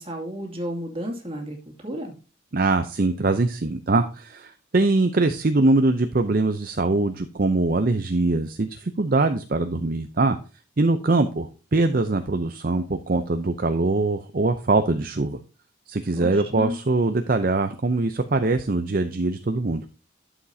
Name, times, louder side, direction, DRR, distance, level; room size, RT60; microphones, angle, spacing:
voice 1, 0.0-2.1 16.2-16.8, equal, 25° right, 1 dB, 2.3 m, -32 dB
voice 2, 2.5-10.4 10.8-15.4 15.9-19.8, right 2 dB, 45° right, 8 dB, 0.6 m, -22 dB
11.5 x 7.2 x 2.8 m, 0.35 s
head